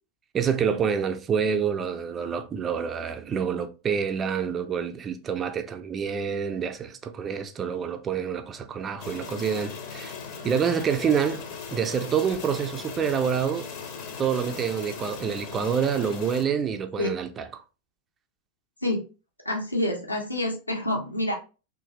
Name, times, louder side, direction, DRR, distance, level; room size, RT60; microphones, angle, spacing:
voice 1, 0.3-10.2 10.4-11.4 11.7-13.7 14.2-17.6, right 7 dB, 25° right, 0.4 m, -27 dB
sound 1, 9.0-16.4, left 5 dB, 45° left, 0.6 m, -38 dB
voice 2, 19.4-21.3, left 1 dB, 85° left, 0.7 m, -27 dB
3.0 x 2.5 x 2.7 m
figure-of-eight pair, 90°, 0 cm